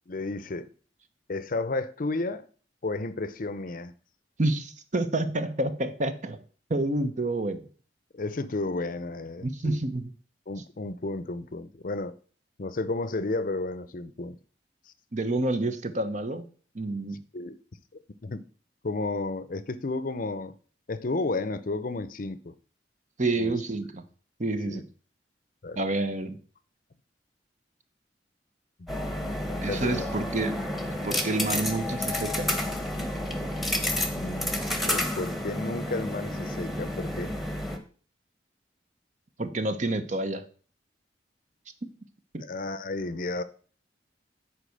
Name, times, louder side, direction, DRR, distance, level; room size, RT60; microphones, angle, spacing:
voice 1, 0.1-0.7 1.3-2.4 2.8-3.9 8.1-9.8 10.5-12.2 12.6-14.4 17.3-17.6 17.9-18.4 18.8-20.5 20.9-22.5 23.4-23.5 24.7-24.8 25.6-25.8 28.8-28.9 29.5-30.1 34.1-34.6 34.8-37.3 42.4-43.4, left 2 dB, 50° left, 0.6 m, -32 dB
voice 2, 4.4-6.4 6.7-7.6 9.4-10.1 15.1-16.4 16.7-17.2 23.2-24.0 24.4-24.8 25.8-26.4 29.6-30.7 31.0-32.6 39.4-40.4 42.3-42.4, right 2 dB, 45° right, 0.9 m, -28 dB
sound 1, 28.9-37.8, left 1 dB, ahead, 1.2 m, -30 dB
10.0 x 4.6 x 6.4 m
head